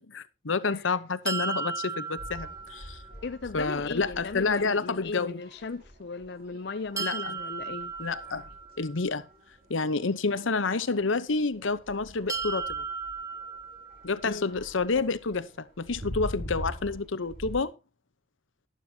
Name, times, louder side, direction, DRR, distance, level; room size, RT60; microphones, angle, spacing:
voice 1, 0.0-3.0 3.5-5.4 7.0-7.3 8.0-8.5 8.8-9.3 9.7-12.8 14.0-17.7, left 4 dB, 90° left, 0.9 m, -29 dB
sound 1, 1.3-3.2 7.0-9.0 12.3-14.3, right 4 dB, 15° right, 0.6 m, -35 dB
sound 2, 2.2-17.6, equal, 50° right, 3.0 m, -45 dB
voice 2, 3.2-7.9 14.2-14.5, left 4 dB, 60° left, 0.6 m, -37 dB
11.5 x 11.5 x 2.8 m
head